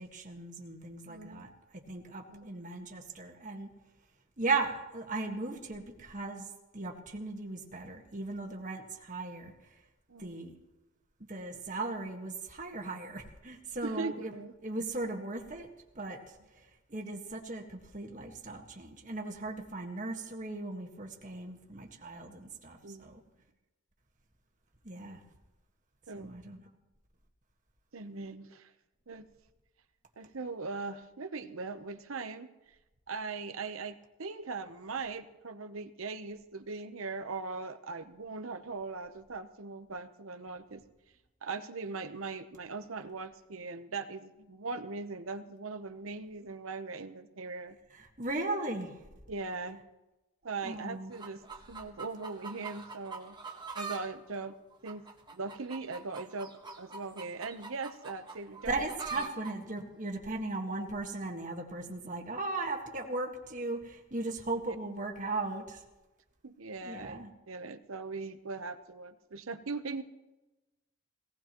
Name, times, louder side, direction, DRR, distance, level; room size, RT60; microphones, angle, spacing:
voice 1, 0.0-3.7 4.4-6.5 6.7-9.5 10.2-10.5 11.3-14.3 14.6-15.7 15.9-16.2 16.9-23.2 24.8-25.2 26.1-26.6 48.2-48.9 50.6-51.1 58.7-65.8 66.8-67.3, right 3 dB, 35° right, 3 dB, 1.6 m, -37 dB
voice 2, 1.1-1.5 2.3-2.5 10.1-10.3 13.8-14.5 22.8-23.2 26.1-26.3 27.9-28.7 29.1-29.2 30.2-32.5 33.1-40.8 41.4-47.8 49.3-49.8 50.4-51.4 51.7-53.4 53.7-54.5 54.8-55.0 55.3-58.7 59.2-59.3 64.7-64.8 66.4-70.0, right 4 dB, 75° right, 9 dB, 0.9 m, -40 dB
sound 1, 51.1-54.0 54.3-59.5 60.3-60.4, right 4 dB, 20° right, 1.4 m, -44 dB
18.5 x 17.5 x 3.0 m, 1.1 s
head